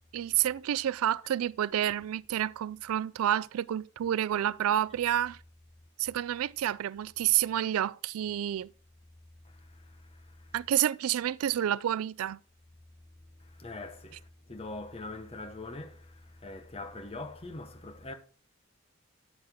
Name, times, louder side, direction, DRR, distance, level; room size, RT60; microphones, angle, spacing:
voice 1, 0.1-5.4 6.0-8.7 10.5-12.4, right 11 dB, 80° right, 0.3 m, -29 dB
voice 2, 9.4-10.7 13.4-18.1, left 2 dB, 25° left, 0.9 m, -43 dB
10.5 x 7.2 x 3.6 m
head